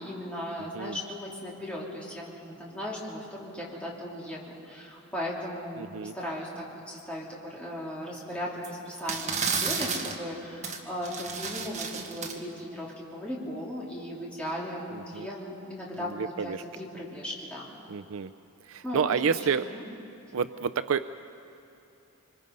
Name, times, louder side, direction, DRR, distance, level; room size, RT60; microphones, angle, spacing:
voice 1, 0.0-17.6 18.8-19.0 19.3-19.4 19.7-19.8, equal, 5° left, -5 dB, 3.1 m, -37 dB
voice 2, 0.6-1.0 5.8-6.1 14.9-15.3 16.0-16.6 17.9-18.3 18.6-19.7 20.3-21.1, right 6 dB, 65° right, 11 dB, 0.4 m, -30 dB
sound 1, 8.6-8.7 9.0-10.2 10.6-10.8 11.0-12.4, right 5 dB, 30° right, 1.5 m, -32 dB
25.5 x 25.0 x 5.3 m, 2.9 s
head